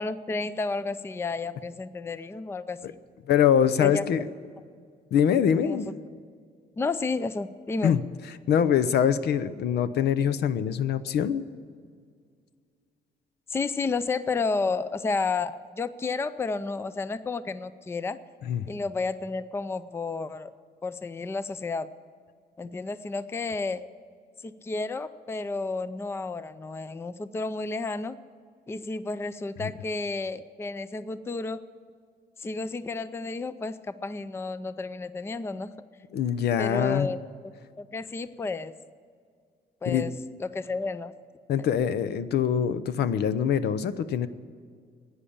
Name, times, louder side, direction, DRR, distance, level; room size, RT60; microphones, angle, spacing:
voice 1, 0.0-3.0 3.8-4.0 5.6-5.8 6.8-8.0 13.5-18.2 18.7-20.5 20.8-21.9 22.6-23.9 24.4-28.2 28.7-31.6 32.4-35.7 36.6-37.2 37.8-38.7 39.8-40.1 40.4-41.1 41.6-41.7, left 3 dB, 15° left, 14 dB, 0.4 m, -31 dB
voice 2, 3.3-4.2 5.1-5.9 7.8-8.0 8.5-11.5 18.4-18.7 29.6-29.7 36.1-37.1 39.9-40.0 41.5-44.3, left 8 dB, 80° left, 14 dB, 0.8 m, -24 dB
15.5 x 9.8 x 8.7 m, 2.1 s
cardioid pair, 145°, 17 cm